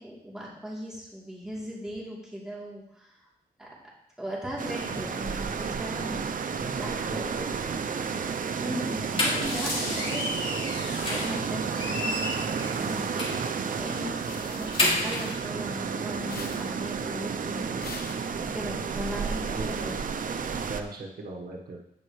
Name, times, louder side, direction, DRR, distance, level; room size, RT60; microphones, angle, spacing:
voice 1, 0.0-3.2 3.6-3.8 4.2-7.3 8.6-10.6 11.0-18.1 18.4-19.9, equal, 5° right, -6 dB, 3.3 m, -38 dB
sound 1, 4.6-20.8, right 6 dB, 60° right, 0.6 m, -32 dB
voice 2, 6.6-7.7 19.5-20.0 20.5-21.8, right 2 dB, 80° right, -1 dB, 1.3 m, -38 dB
sound 2, 8.9-11.4 11.7-13.5 13.9-14.0 14.3-15.3, left 1 dB, 35° left, 2.9 m, -30 dB
sound 3, 14.2-15.9 16.2-18.9, left 4 dB, 80° left, 1.1 m, -45 dB
16.0 x 5.4 x 3.2 m, 0.79 s
wide cardioid pair, 100°, 16 cm